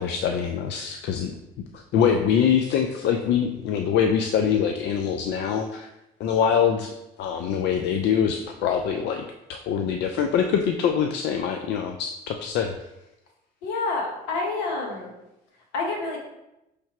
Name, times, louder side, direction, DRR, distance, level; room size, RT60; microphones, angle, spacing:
voice 1, 0.0-1.3 1.7-5.9 6.2-6.9 7.2-9.2 9.5-12.7, left 8 dB, 70° left, 5 dB, 0.4 m, -24 dB
voice 2, 13.6-15.1 15.7-16.2, left 3 dB, 90° left, 1 dB, 1.0 m, -28 dB
5.6 x 3.3 x 2.9 m, 0.92 s
supercardioid pair, 80°, 18 cm